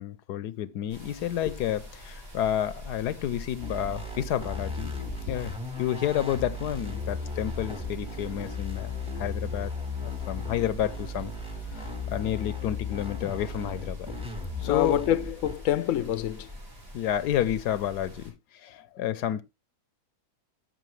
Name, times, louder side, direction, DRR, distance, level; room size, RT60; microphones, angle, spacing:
voice 1, 0.0-5.0 5.3-11.3 11.7-14.1 14.6-15.0 16.9-18.3 18.6-19.4, left 11 dB, 80° left, 1.3 m, -30 dB
sound 1, 0.9-18.3, left 1 dB, 75° right, 7.2 m, -45 dB
sound 2, 3.6-15.6, left 3 dB, 5° right, 1.1 m, -36 dB
voice 2, 14.7-16.5 18.7-18.9, left 12 dB, 60° left, 0.9 m, -26 dB
14.0 x 5.9 x 3.2 m
omnidirectional pair, 1.7 m